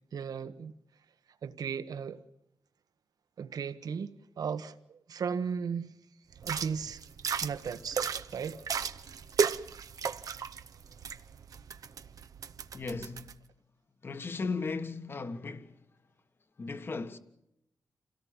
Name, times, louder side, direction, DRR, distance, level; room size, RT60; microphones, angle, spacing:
voice 1, 0.1-0.7 1.4-2.2 3.4-6.0 6.4-7.0 7.4-8.0 8.3-8.6, right 6 dB, 90° right, 1.5 m, -36 dB
sound 1, 6.4-13.3, right 6 dB, 65° right, 0.8 m, -35 dB
voice 2, 12.7-13.4 14.0-15.8 16.6-17.2, left 4 dB, 35° left, 1.5 m, -36 dB
28.5 x 18.0 x 7.4 m
wide cardioid pair, 175°, 6 cm